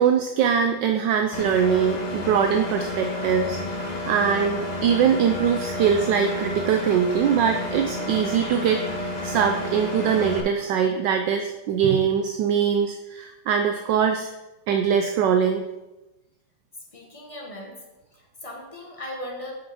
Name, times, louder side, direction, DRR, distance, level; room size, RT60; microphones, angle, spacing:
voice 1, 0.0-14.3 14.7-15.7, right 7 dB, 75° right, 5 dB, 1.1 m, -22 dB
Engine, 1.3-10.4, left 1 dB, 70° left, 0.4 m, -31 dB
voice 2, 16.9-17.8 18.1-19.5, left 1 dB, 20° left, -1 dB, 1.1 m, -38 dB
5.5 x 5.4 x 5.7 m, 1.0 s
omnidirectional pair, 2.2 m